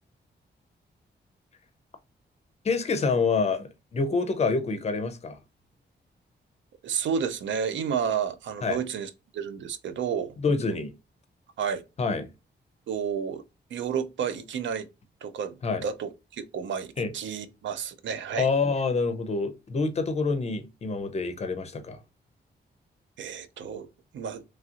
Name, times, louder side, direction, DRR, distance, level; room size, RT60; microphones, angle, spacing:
voice 1, 2.6-5.4 8.6-8.8 10.4-10.9 12.0-12.3 15.6-15.8 17.0-17.1 18.4-22.0, left 4 dB, 35° left, 0.5 m, -27 dB
voice 2, 6.8-10.4 11.6-11.8 12.9-13.4 13.7-14.9 15.2-15.5 15.8-18.5 23.2-23.9 24.1-24.4, right 7 dB, 90° right, 0.5 m, -31 dB
3.1 x 2.4 x 2.7 m
wide cardioid pair, 170°, 19 cm